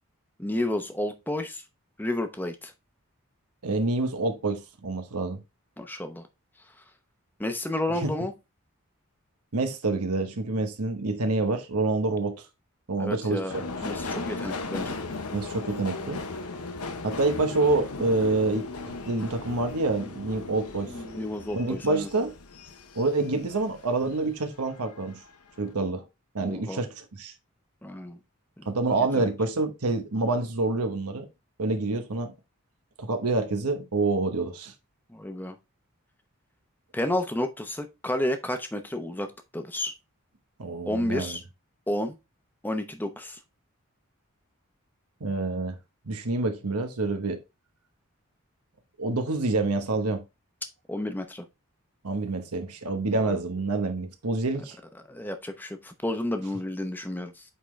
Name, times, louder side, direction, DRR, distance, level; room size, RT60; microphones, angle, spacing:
voice 1, 0.4-1.6 2.0-2.7 5.8-6.2 7.4-8.3 13.0-15.1 20.9-22.1 26.4-26.8 27.8-28.2 28.6-28.7 29.0-29.3 35.1-35.6 36.9-39.9 40.9-41.4 41.9-42.2 42.6-43.4 50.9-51.4 53.1-53.4 55.1-57.4, left 1 dB, 10° left, 0.7 m, -31 dB
voice 2, 3.6-5.4 7.9-8.1 9.5-12.4 12.9-13.4 15.3-16.2 17.0-18.7 19.0-20.9 21.5-22.3 22.9-25.2 25.6-26.0 26.3-27.3 28.7-31.3 31.6-32.3 33.0-34.7 40.6-41.4 45.2-45.8 46.1-47.4 49.0-50.2 52.0-54.8, right 3 dB, 90° right, 1.1 m, -27 dB
Subway metro underground, 13.5-24.2 24.6-25.3 25.6-25.7, left 3 dB, 85° left, 1.0 m, -37 dB
8.4 x 3.8 x 3.2 m
head